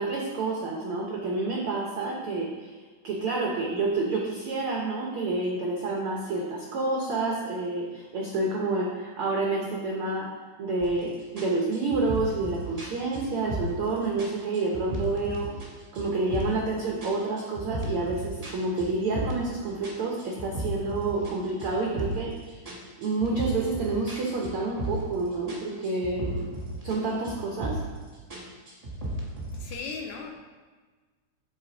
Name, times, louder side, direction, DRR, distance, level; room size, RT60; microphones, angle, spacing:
voice 1, 0.0-2.7 3.0-10.3 10.6-15.5 15.9-22.7 23.0-26.5 26.8-27.8, right 3 dB, 80° right, -2 dB, 1.2 m, -29 dB
sound 1, 10.8-11.0 11.4-13.9 14.2-15.7 15.9-16.7 17.0-19.5 19.8-22.3 22.6-25.2 25.5-27.0 27.2-28.0 28.3-29.7, right 1 dB, 25° right, 0.7 m, -35 dB
voice 2, 29.5-30.3, left 5 dB, 80° left, 2 dB, 1.8 m, -37 dB
11.5 x 4.1 x 3.8 m, 1.4 s
omnidirectional pair, 3.6 m